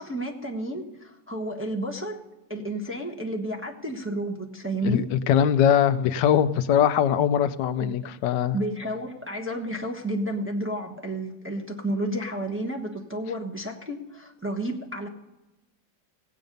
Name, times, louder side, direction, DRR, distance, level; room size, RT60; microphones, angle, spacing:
voice 1, 0.0-2.2 2.5-5.1 7.8-7.9 8.5-15.1, right 1 dB, 10° right, 0 dB, 1.0 m, -31 dB
voice 2, 4.8-8.6, left 9 dB, 90° left, 12 dB, 1.3 m, -21 dB
18.0 x 8.4 x 5.3 m, 1.0 s
omnidirectional pair, 1.9 m